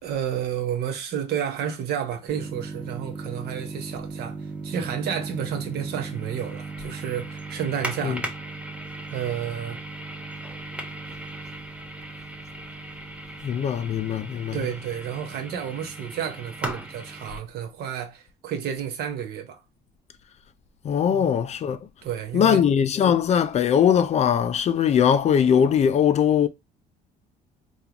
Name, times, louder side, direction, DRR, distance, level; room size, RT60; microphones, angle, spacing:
voice 1, 0.0-8.3 9.1-9.8 14.5-19.6 21.1-21.3 22.0-22.7, right 9 dB, 70° right, 0.8 m, -31 dB
sound 1, 2.3-17.4, right 2 dB, 5° right, 0.7 m, -37 dB
voice 2, 13.4-14.6 20.8-21.8 22.3-26.5, left 8 dB, 40° left, 0.4 m, -20 dB
3.5 x 2.4 x 2.9 m
cardioid pair, 110°, 17 cm